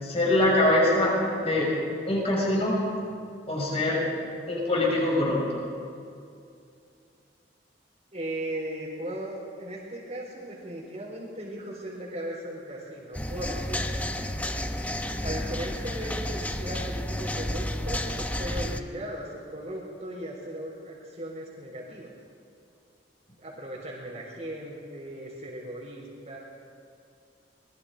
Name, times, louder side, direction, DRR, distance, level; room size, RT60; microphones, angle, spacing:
voice 1, 0.0-1.7 2.1-2.8 3.5-4.1 4.5-5.6, left 1 dB, 35° left, -3 dB, 6.7 m, -24 dB
voice 2, 8.1-13.9 15.2-22.1 23.4-26.4, right 1 dB, 40° right, -7 dB, 4.3 m, -37 dB
sound 1, 13.1-18.8, left 1 dB, 10° left, 0.9 m, -31 dB
25.5 x 21.0 x 5.1 m, 2.5 s
head